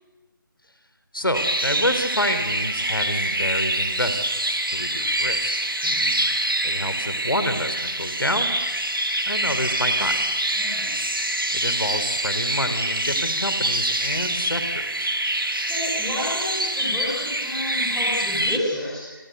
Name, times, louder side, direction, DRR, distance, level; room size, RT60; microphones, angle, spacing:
voice 1, 1.1-5.5 6.6-8.6 9.2-10.2 11.5-15.1, equal, 75° left, 9 dB, 4.1 m, -28 dB
sound 1, 1.3-18.6, right 1 dB, 80° right, 2.8 m, -25 dB
voice 2, 10.5-10.9 15.4-19.2, left 1 dB, 5° left, -7 dB, 6.5 m, -31 dB
29.5 x 24.0 x 8.3 m, 1.1 s
figure-of-eight pair, 160°, 12 cm